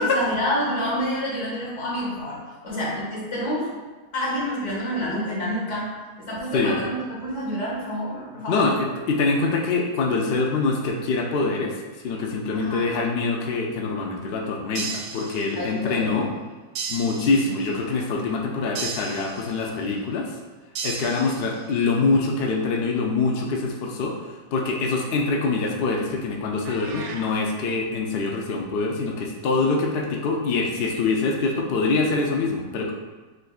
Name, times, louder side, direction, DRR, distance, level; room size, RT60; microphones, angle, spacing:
voice 1, 0.0-3.7 4.1-5.9 6.2-8.7 12.5-12.9 15.6-16.1, equal, 55° left, -5 dB, 1.5 m, -28 dB
voice 2, 8.5-16.3 16.9-20.3 20.8-24.2 24.5-32.9, left 3 dB, 75° left, 0 dB, 0.5 m, -24 dB
sound 1, 14.7-15.8 16.7-17.8 18.7-19.8 20.7-21.8, right 5 dB, 90° right, 1.1 m, -35 dB
sound 2, 26.6-27.3, right 3 dB, 65° right, 0.8 m, -38 dB
6.4 x 2.6 x 2.3 m, 1.3 s
omnidirectional pair, 1.6 m